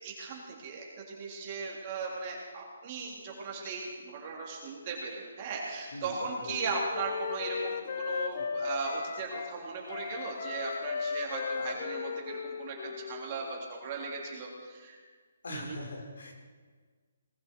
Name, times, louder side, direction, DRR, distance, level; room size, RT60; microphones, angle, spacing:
voice 1, 0.0-15.0 15.5-15.8, right 4 dB, 25° right, -2 dB, 3.4 m, -37 dB
voice 2, 5.9-6.6 11.6-11.8 12.8-12.9 15.4-16.3, left 1 dB, 80° left, 2 dB, 4.3 m, -42 dB
Wind instrument woodwind instrument, 6.0-9.5 9.9-13.7, left 6 dB, 40° left, 0.6 m, -37 dB
20.0 x 15.0 x 4.6 m, 1.5 s
hypercardioid pair, 170°, 0 cm